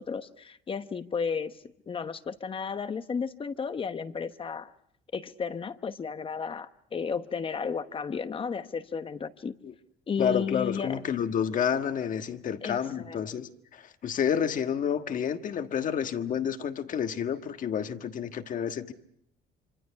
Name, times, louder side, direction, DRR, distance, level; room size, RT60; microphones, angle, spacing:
voice 1, 0.0-1.6 1.9-4.7 5.1-9.5 10.1-11.0 12.6-13.2, left 6 dB, 30° left, 11 dB, 1.0 m, -33 dB
voice 2, 10.2-18.9, left 8 dB, 50° left, 8 dB, 1.5 m, -29 dB
26.5 x 26.0 x 5.8 m, 0.72 s
cardioid pair, 110°, 17 cm